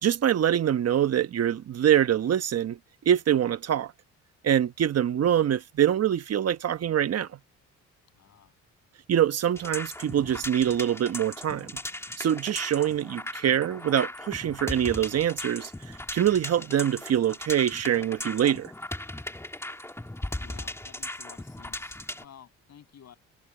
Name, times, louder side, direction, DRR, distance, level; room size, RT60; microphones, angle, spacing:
voice 1, 0.0-2.8 3.0-3.9 4.4-7.3 9.1-11.7 12.2-18.7, right 10 dB, 55° right, 1.1 m, -24 dB
voice 2, 8.1-8.5 20.4-23.2, left 9 dB, 60° left, 7.0 m, -52 dB
sound 1, 9.5-22.2, left 1 dB, 10° left, 2.5 m, -38 dB
cardioid pair, 90°, 30 cm